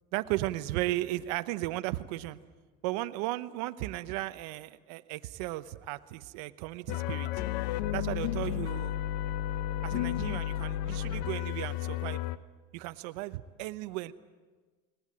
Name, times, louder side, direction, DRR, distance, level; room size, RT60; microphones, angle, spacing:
voice 1, 0.1-2.4 2.8-7.4 7.9-8.9 9.8-12.2 12.7-14.1, right 17 dB, 80° right, 12 dB, 0.9 m, -35 dB
sound 1, 6.9-12.4, left 12 dB, 85° left, 0.7 m, -32 dB
20.0 x 19.0 x 8.9 m, 1.3 s
supercardioid pair, 115°, 20 cm